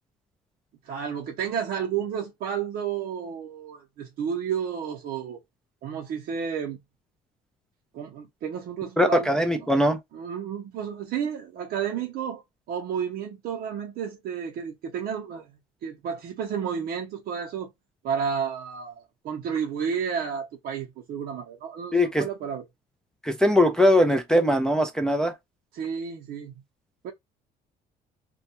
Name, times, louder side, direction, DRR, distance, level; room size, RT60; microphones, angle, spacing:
voice 1, 0.8-5.4 5.8-6.8 7.9-9.5 10.1-17.7 18.0-22.6 25.7-26.6 27.0-27.1, right 7 dB, 65° right, 0.6 m, -31 dB
voice 2, 9.0-10.0 21.9-22.3 23.2-25.3, left 1 dB, 5° left, 0.3 m, -21 dB
2.2 x 2.1 x 2.8 m
cardioid pair, 110°, 17 cm